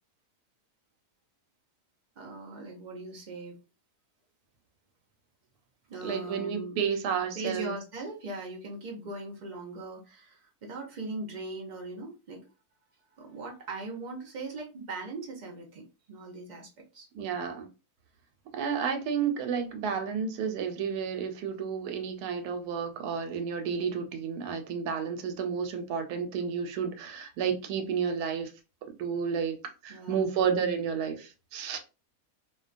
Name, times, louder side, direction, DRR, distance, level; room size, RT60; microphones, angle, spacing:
voice 1, 2.2-3.6 5.9-6.7 7.4-12.4 13.2-17.1 29.9-30.3, right 2 dB, 60° right, 0.4 m, -40 dB
voice 2, 6.0-7.7 17.1-17.7 18.5-28.5 29.0-29.6 29.8-31.8, right 7 dB, 90° right, 1.1 m, -31 dB
2.5 x 2.2 x 2.4 m
omnidirectional pair, 1.6 m